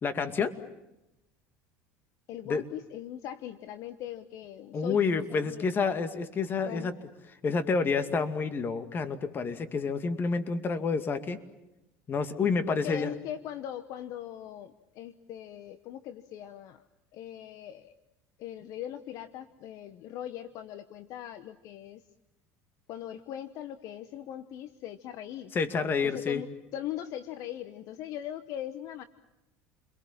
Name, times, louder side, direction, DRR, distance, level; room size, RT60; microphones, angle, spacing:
voice 1, 0.0-0.5 2.5-2.6 4.7-6.9 7.4-11.4 12.1-13.1 25.5-26.4, left 5 dB, 35° left, 10 dB, 2.2 m, -29 dB
voice 2, 2.3-5.8 6.6-6.9 12.7-16.8 17.1-18.0 18.4-22.0 22.9-25.5 26.0-29.0, left 11 dB, 60° left, 12 dB, 1.0 m, -40 dB
29.5 x 22.5 x 7.4 m, 0.91 s
supercardioid pair, 105°, 6 cm